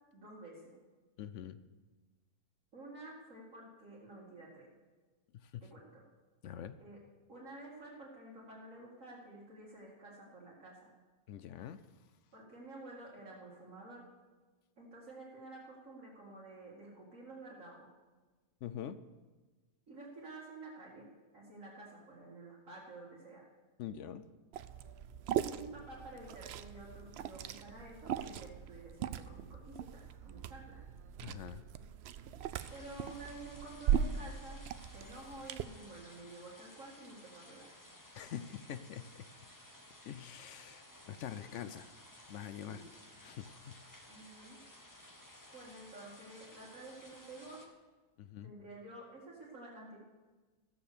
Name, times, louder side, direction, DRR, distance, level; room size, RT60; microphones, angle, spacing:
voice 1, 0.1-0.8 2.7-4.7 5.6-6.0 6.8-7.0 7.3-10.9 12.3-14.1 14.8-17.9 19.9-21.1 21.3-23.5 25.3-30.8 32.7-34.6 34.9-37.7 42.7-42.9 44.1-44.6 45.5-47.6 48.4-50.0, right 2 dB, 55° right, -4 dB, 2.2 m, -51 dB
voice 2, 1.2-1.6 5.3-5.6 6.4-6.8 11.3-11.8 18.6-19.0 23.8-24.3 31.2-31.7 38.1-39.3 40.1-41.9 42.3-42.8 43.2-43.8 48.2-48.5, left 9 dB, 70° left, 12 dB, 0.7 m, -45 dB
Liquid, 24.5-35.6, right 9 dB, 90° right, 0.5 m, -39 dB
sound 1, 32.6-47.7, left 1 dB, 15° left, 1.1 m, -57 dB
14.0 x 7.0 x 6.6 m, 1.3 s
omnidirectional pair, 1.7 m